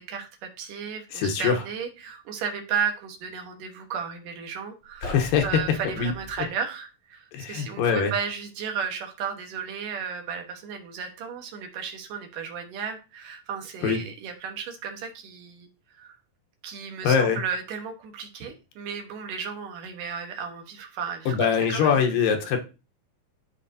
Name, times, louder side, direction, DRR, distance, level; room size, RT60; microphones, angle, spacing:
voice 1, 0.0-5.2 5.4-16.2 16.6-22.2, right 6 dB, 75° right, 4 dB, 2.7 m, -34 dB
voice 2, 1.1-1.6 5.0-5.5 6.0-6.1 7.3-8.1 13.8-14.0 17.0-17.4 21.3-22.6, left 6 dB, 80° left, 4 dB, 2.8 m, -23 dB
sound 1, 4.8-6.5, left 2 dB, 60° left, 1.2 m, -39 dB
11.5 x 4.4 x 2.7 m, 0.30 s
omnidirectional pair, 3.9 m